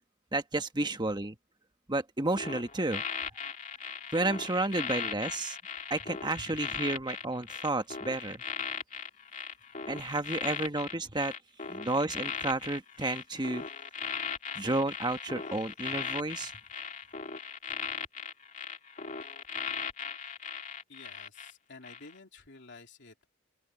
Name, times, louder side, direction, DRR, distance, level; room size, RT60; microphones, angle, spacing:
voice 1, 0.3-1.4 1.9-3.0 4.1-5.6 5.9-8.4 9.9-11.3 11.7-13.7 14.5-16.5, right 2 dB, 20° right, 1.3 m, -31 dB
sound 1, 2.4-21.5 21.8-22.1, left 6 dB, 35° left, 2.5 m, -38 dB
voice 2, 20.9-23.3, left 3 dB, 55° left, 3.2 m, -51 dB
open air
head